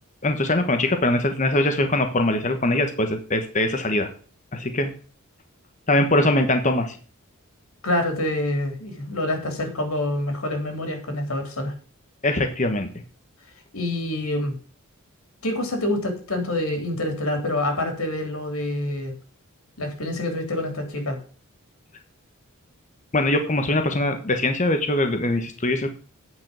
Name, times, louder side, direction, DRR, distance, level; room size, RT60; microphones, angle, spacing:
voice 1, 0.2-4.1 4.5-4.9 5.9-6.9 12.2-12.9 23.1-25.9, left 1 dB, 35° left, 6 dB, 1.2 m, -22 dB
voice 2, 7.8-11.7 13.7-14.6 15.4-19.1 19.8-21.2, left 1 dB, 75° left, 4 dB, 3.4 m, -26 dB
9.2 x 5.5 x 7.5 m, 0.41 s
head